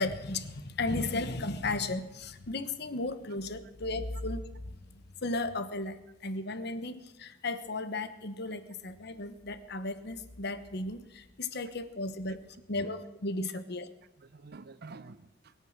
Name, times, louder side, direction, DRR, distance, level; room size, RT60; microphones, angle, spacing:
voice 1, 0.0-4.5 5.2-12.4 12.7-13.9, left 2 dB, 60° left, 12 dB, 1.2 m, -35 dB
voice 2, 12.3-12.9 14.2-15.5, right 3 dB, 55° right, 14 dB, 0.6 m, -50 dB
21.5 x 9.2 x 6.5 m, 0.98 s
head